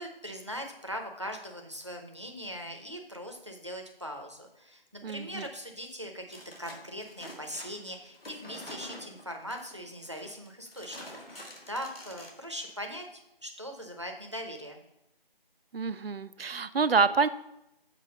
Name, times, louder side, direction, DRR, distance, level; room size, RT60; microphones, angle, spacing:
voice 1, 0.0-13.0 13.4-14.8, equal, 30° right, 3 dB, 0.7 m, -40 dB
voice 2, 5.0-5.5 15.7-17.3, right 5 dB, 75° right, 14 dB, 0.5 m, -27 dB
sound 1, 6.3-12.7, left 1 dB, 75° left, 1.9 m, -47 dB
7.5 x 4.6 x 5.1 m, 0.85 s
figure-of-eight pair, 175°, 30 cm